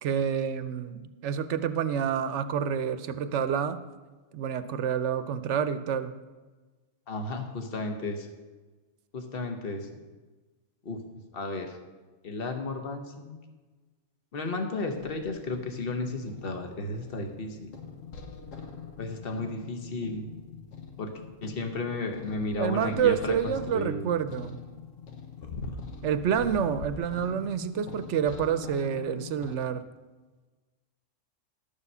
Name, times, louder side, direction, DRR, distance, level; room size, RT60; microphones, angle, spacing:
voice 1, 0.0-3.8 4.3-6.1 22.6-24.6 26.0-29.8, right 8 dB, 70° right, 11 dB, 0.9 m, -28 dB
voice 2, 7.1-8.3 9.1-9.9 10.8-11.0 11.3-11.8 12.2-13.4 14.3-17.7 19.0-20.3 21.0-21.1 21.4-24.1, left 2 dB, 50° left, 5 dB, 1.3 m, -33 dB
sound 1, 14.9-29.6, left 5 dB, 90° left, 1.4 m, -43 dB
12.0 x 7.0 x 5.5 m, 1.3 s
omnidirectional pair, 1.3 m